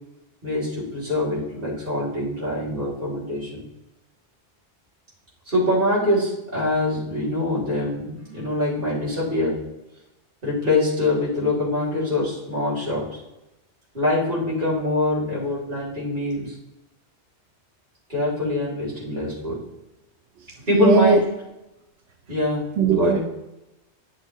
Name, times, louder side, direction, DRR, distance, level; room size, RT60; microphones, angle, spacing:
voice 1, 0.4-3.7 5.5-9.6 10.4-13.2 13.9-16.5 18.1-19.6 20.7-21.2 22.3-22.6 22.9-23.2, left 1 dB, 50° right, -6 dB, 3.6 m, -24 dB
voice 2, 20.7-21.2 22.8-23.2, right 5 dB, 90° right, 4 dB, 0.9 m, -18 dB
10.5 x 6.4 x 3.0 m, 0.95 s
omnidirectional pair, 1.1 m